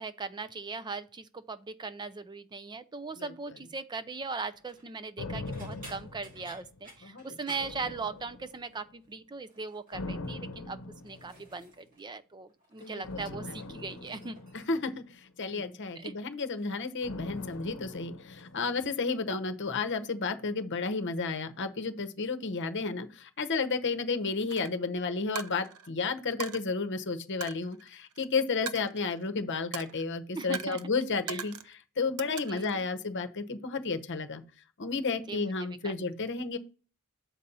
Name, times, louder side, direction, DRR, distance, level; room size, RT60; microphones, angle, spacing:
voice 1, 0.0-14.4 15.5-15.6 16.0-16.1 30.3-30.8 31.3-31.4 32.3-32.9 35.3-35.5 35.8-36.0, right 4 dB, 20° right, 0.4 m, -39 dB
sound 1, 4.5-4.9 5.4-8.5 8.8-9.1 9.5-10.0 10.6-12.1 12.3-13.2 13.5-15.0 15.9-16.2 16.6-18.6 18.9-19.4 19.8-20.0 21.3-21.4, right 1 dB, 40° right, 2.6 m, -56 dB
sound 2, 5.2-7.1 7.6-8.8 9.9-11.6 13.0-15.4 17.0-19.2 19.5-19.6, left 2 dB, 80° left, 0.8 m, -42 dB
voice 2, 12.8-13.9 14.5-34.4 34.8-36.6, left 4 dB, 55° left, 0.9 m, -32 dB
Coin (dropping), 24.5-24.7 25.4-25.9 26.4-26.6 27.4-28.3 28.7-29.3 29.7-30.0 30.5-30.8 31.3-31.7 32.2-32.8, right 7 dB, 85° right, 0.6 m, -40 dB
7.3 x 4.3 x 5.4 m
head